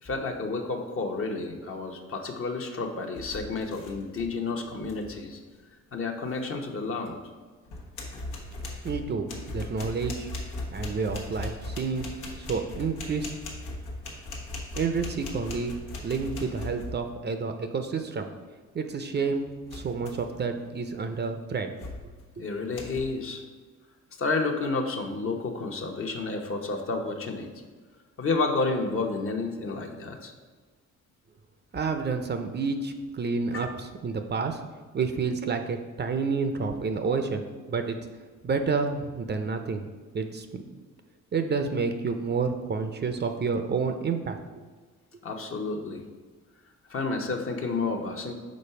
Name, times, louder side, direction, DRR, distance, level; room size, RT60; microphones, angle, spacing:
voice 1, 0.0-5.4 5.9-7.2 22.4-23.4 24.2-27.5 28.2-30.3 33.5-33.7 45.2-46.0 46.9-48.3, left 3 dB, 45° left, 3 dB, 0.9 m, -30 dB
sound 1, 3.1-4.4 4.6-5.1 7.1-7.2 7.6-17.2 19.7-20.4 20.9-21.1 21.8-22.2 22.7-23.0, left 2 dB, 90° left, 1.2 m, -39 dB
voice 2, 8.8-10.3 10.7-13.3 14.8-15.7 16.0-18.3 18.7-21.7 31.7-34.6 34.9-37.4 37.7-38.0 38.4-39.8 40.1-40.6 41.3-44.6, right 4 dB, 35° right, 7 dB, 0.5 m, -29 dB
5.2 x 3.9 x 5.6 m, 1.4 s
cardioid pair, 90°, 30 cm